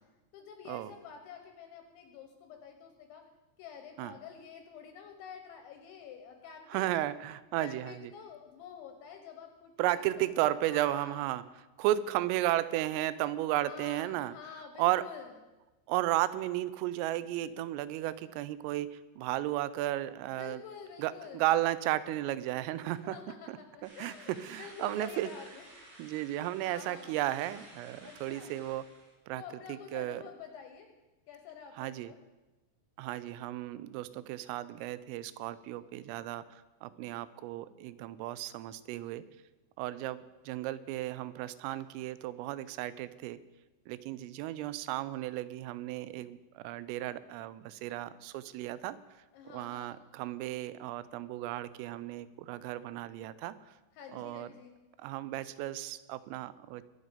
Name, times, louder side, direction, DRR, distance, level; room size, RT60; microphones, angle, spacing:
voice 1, 0.3-3.3 3.6-7.0 7.6-11.4 13.5-15.3 20.3-21.5 22.8-25.7 26.6-27.2 28.0-28.6 29.4-30.9 31.3-32.2 49.3-49.9 53.9-54.8, left 7 dB, 75° left, 5 dB, 3.0 m, -49 dB
voice 2, 6.7-8.1 9.8-11.4 11.8-14.3 14.8-15.0 15.9-20.6 21.0-23.2 23.5-23.6 24.0-25.3 26.0-28.8 29.3-29.4 29.7-30.2 31.8-32.1 33.0-36.4 36.8-39.2 39.8-43.4 43.9-49.0 49.5-53.6 54.1-54.5 55.0-56.8, right 14 dB, 85° right, 15 dB, 3.2 m, -34 dB
sound 1, 23.8-29.1, right 1 dB, 55° right, 8.3 m, -54 dB
22.5 x 8.2 x 5.1 m, 1.1 s
omnidirectional pair, 5.9 m